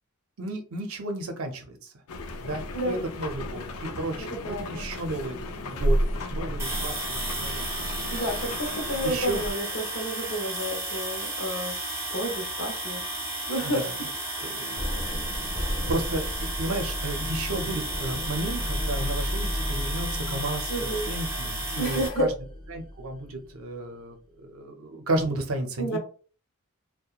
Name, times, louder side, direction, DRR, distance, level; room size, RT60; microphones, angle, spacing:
voice 1, 0.4-1.9 2.4-8.5 9.0-9.4 13.6-14.0 14.4-22.3 22.7-24.2 24.4-26.0, right 2 dB, 70° right, 4 dB, 0.6 m, -33 dB
sound 1, 2.1-9.6, equal, 85° left, 0.4 m, -32 dB
voice 2, 4.2-4.8 8.1-11.7 12.1-13.0 13.5-13.8 14.6-15.2 20.7-21.1 21.8-22.3 25.8-26.0, equal, 65° left, 2 dB, 0.8 m, -30 dB
sound 2, 6.6-22.1, right 1 dB, 15° right, 0.8 m, -33 dB
sound 3, 14.8-23.6, equal, 20° left, 0.7 m, -33 dB
2.8 x 2.1 x 2.4 m, 0.39 s
head